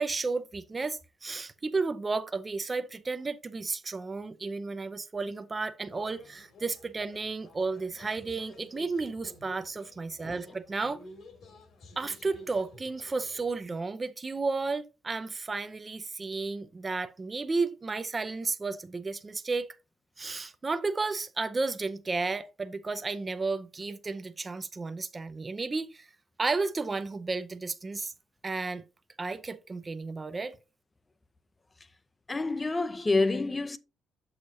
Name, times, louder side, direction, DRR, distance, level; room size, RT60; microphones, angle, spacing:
voice 1, 0.0-11.0 12.0-19.7 20.2-26.1 26.4-28.1 28.4-28.8 29.2-30.5, right 3 dB, 30° right, 0.5 m, -33 dB
sound 1, 5.8-13.8, left 1 dB, 70° left, 2.3 m, -51 dB
voice 2, 32.3-33.8, left 3 dB, 25° left, 0.6 m, -27 dB
7.3 x 6.4 x 2.7 m
cardioid pair, 90°, 0 cm